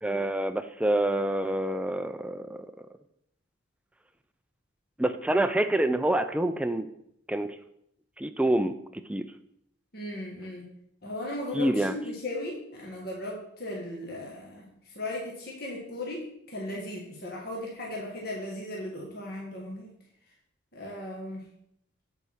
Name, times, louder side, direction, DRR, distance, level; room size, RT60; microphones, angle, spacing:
voice 1, 0.0-2.7 5.0-6.9 7.3-7.5 8.2-8.7 9.1-9.2 11.5-11.9, right 1 dB, 5° right, 9 dB, 0.3 m, -26 dB
voice 2, 9.9-10.6 11.0-19.9 20.7-21.4, left 1 dB, 50° left, -2 dB, 1.6 m, -37 dB
8.2 x 4.7 x 5.8 m, 0.74 s
head